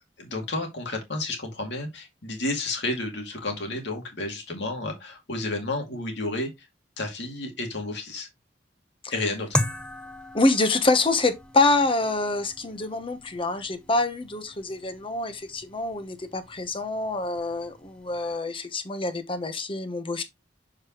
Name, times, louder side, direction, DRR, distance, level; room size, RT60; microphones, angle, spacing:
voice 1, 0.2-6.7 7.0-8.3 9.1-9.6, left 2 dB, 70° left, 2.2 m, -31 dB
sound 1, 9.5-18.4, left 1 dB, 5° left, 0.6 m, -37 dB
voice 2, 10.3-20.2, left 2 dB, 30° left, 0.9 m, -26 dB
6.7 x 4.9 x 3.0 m
head